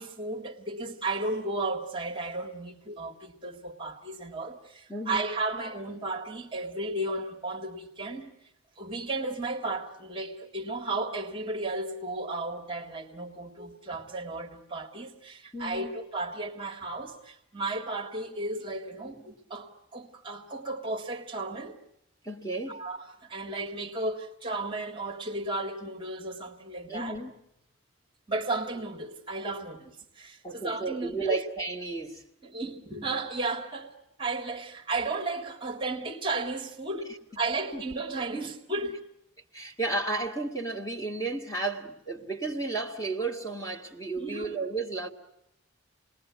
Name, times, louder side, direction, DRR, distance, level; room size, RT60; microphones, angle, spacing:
voice 1, 0.0-8.3 8.8-21.8 22.7-27.2 28.3-31.4 32.4-37.1 37.4-39.0 44.2-44.5, right 2 dB, 25° right, 1.7 m, -34 dB
voice 2, 4.9-5.2 15.5-15.9 22.2-22.8 26.9-27.3 30.4-32.2 36.9-37.0 37.7-37.8 39.5-45.1, right 3 dB, 15° left, 2.2 m, -33 dB
28.5 x 20.0 x 9.4 m
head